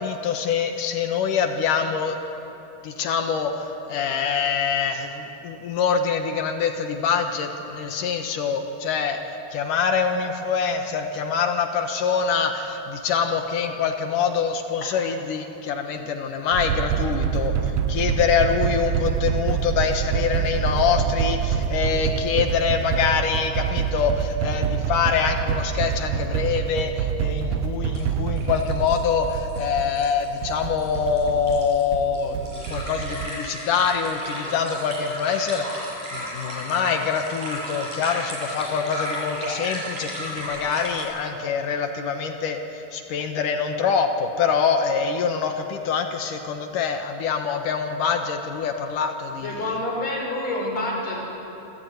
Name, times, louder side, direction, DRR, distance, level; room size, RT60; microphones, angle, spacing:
voice 1, 0.0-2.2 2.8-9.2 9.5-49.6, left 6 dB, 70° left, 5 dB, 2.6 m, -25 dB
sound 1, 16.5-33.3, right 8 dB, 85° right, 1.6 m, -26 dB
sound 2, 25.2-25.3 25.5-25.6 27.4-27.5 27.9-28.0 28.3-41.0, equal, 55° right, 8.1 m, -34 dB
voice 2, 49.4-51.2, left 1 dB, 45° left, -2 dB, 6.4 m, -27 dB
27.0 x 14.0 x 9.3 m, 3.0 s
omnidirectional pair, 4.2 m